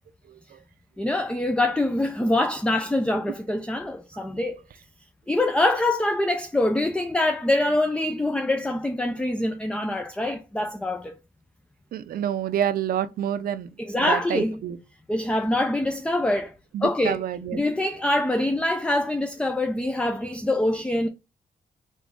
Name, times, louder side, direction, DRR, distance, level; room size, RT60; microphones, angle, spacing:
voice 1, 1.0-4.6 5.3-11.2 13.8-14.6 15.1-16.5 16.8-17.2 17.5-21.1, left 1 dB, 5° left, 0.5 m, -24 dB
voice 2, 11.9-13.7 14.0-14.8 16.7-17.6, right 10 dB, 70° right, 0.5 m, -28 dB
3.8 x 3.6 x 3.6 m
cardioid pair, 75°, 16 cm